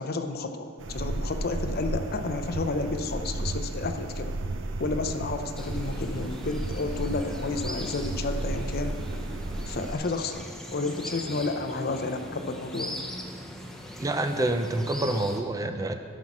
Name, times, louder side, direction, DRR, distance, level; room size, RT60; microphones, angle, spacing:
voice 1, 0.0-4.3 4.8-9.0 9.7-10.5 10.7-13.0, left 3 dB, 50° left, 7 dB, 0.6 m, -31 dB
sound 1, 0.8-9.9, right 2 dB, 65° right, 0.6 m, -33 dB
sound 2, 5.6-15.4, equal, ahead, 0.8 m, -40 dB
voice 2, 14.0-15.9, right 2 dB, 15° right, 7 dB, 0.4 m, -27 dB
12.0 x 5.6 x 6.0 m, 2.3 s
head